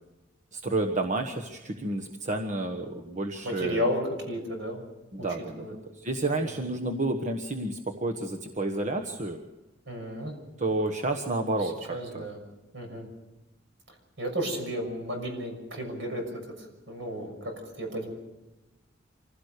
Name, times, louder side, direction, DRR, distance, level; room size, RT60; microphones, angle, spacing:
voice 1, 0.5-3.8 5.1-9.4 10.6-12.3, right 2 dB, 40° right, 3 dB, 1.3 m, -30 dB
voice 2, 3.4-4.0 4.3-4.8 5.2-5.3 5.6-5.7 6.4-6.5 9.9-10.3 11.6-12.4 12.7-13.1 14.2-18.1, equal, 70° right, 3 dB, 6.5 m, -33 dB
26.0 x 16.5 x 6.7 m, 1.0 s
head